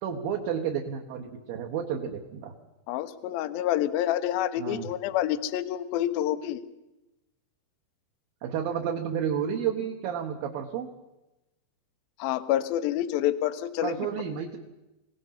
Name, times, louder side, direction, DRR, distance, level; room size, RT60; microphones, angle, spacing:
voice 1, 0.0-2.5 4.6-4.9 8.4-10.9 13.8-14.6, right 8 dB, 65° right, 0 dB, 2.6 m, -31 dB
voice 2, 2.9-6.6 12.2-14.0, left 12 dB, 75° left, 10 dB, 2.3 m, -28 dB
25.5 x 17.5 x 5.9 m, 0.97 s
omnidirectional pair, 5.2 m